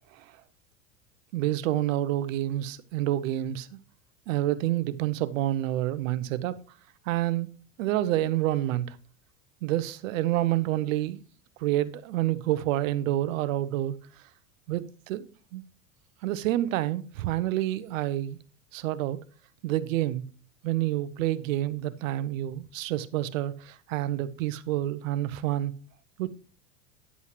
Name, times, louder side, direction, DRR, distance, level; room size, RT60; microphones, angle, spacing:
voice 1, 1.3-3.8 4.3-6.6 7.1-9.0 9.6-11.2 11.6-14.0 14.7-15.6 16.2-18.4 18.7-19.2 19.6-20.2 20.6-25.7 26.2-26.3, right 14 dB, 70° right, 0.9 m, -28 dB
9.7 x 8.2 x 3.1 m
hypercardioid pair, 90°, 40 cm